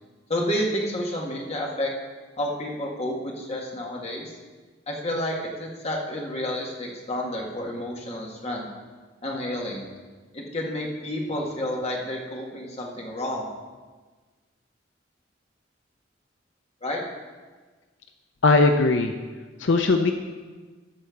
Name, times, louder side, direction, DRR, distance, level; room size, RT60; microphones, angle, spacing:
voice 1, 0.3-1.9 2.4-4.3 4.9-8.7 9.2-9.8 10.3-13.5 16.8-17.0, left 1 dB, 35° left, -1 dB, 1.7 m, -30 dB
voice 2, 18.4-19.1 19.6-20.1, left 3 dB, 80° left, 6 dB, 0.6 m, -19 dB
13.0 x 4.4 x 6.9 m, 1.4 s
head